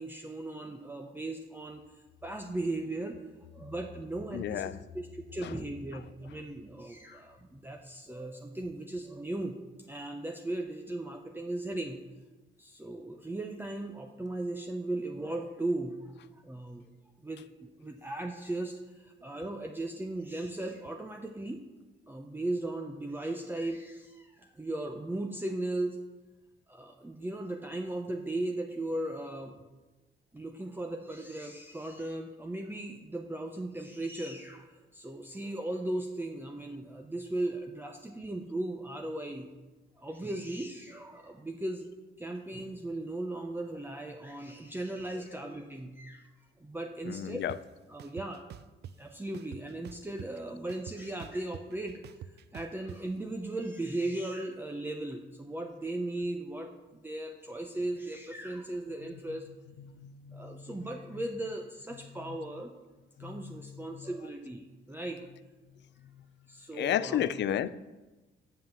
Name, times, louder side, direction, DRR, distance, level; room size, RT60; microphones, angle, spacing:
voice 1, 0.0-1.8 2.2-3.2 3.5-4.6 4.9-9.6 9.9-12.0 12.6-16.9 17.2-21.6 22.1-26.0 26.7-29.6 30.3-39.5 40.0-41.9 42.2-46.3 46.6-47.4 47.9-48.4 49.0-52.0 52.5-59.5 60.3-62.7 63.2-65.2 66.5-67.2 67.6-67.7, right 2 dB, 10° right, 3 dB, 0.7 m, -37 dB
voice 2, 4.3-4.8 5.4-5.6 5.9-6.4 7.1-7.2 17.4-17.5 45.1-45.4 47.0-47.6 59.0-61.3 61.9-62.6 63.2-64.3 66.0-66.3 66.7-67.7, left 11 dB, 60° left, 16 dB, 0.4 m, -36 dB
sound 1, 47.5-47.6 48.0-48.9 49.3-50.4 50.7-53.0, right 10 dB, 55° right, 0.4 m, -45 dB
7.4 x 5.6 x 7.0 m, 1.1 s
cardioid pair, 90°, 20 cm